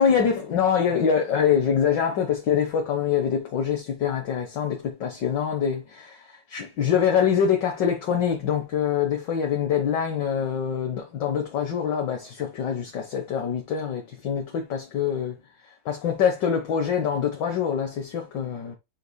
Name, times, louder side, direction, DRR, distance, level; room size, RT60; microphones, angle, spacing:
voice 1, 0.0-15.4 15.8-18.8, left 7 dB, 60° left, 1.6 m, -24 dB
9.5 x 4.8 x 2.2 m
omnidirectional pair, 2.4 m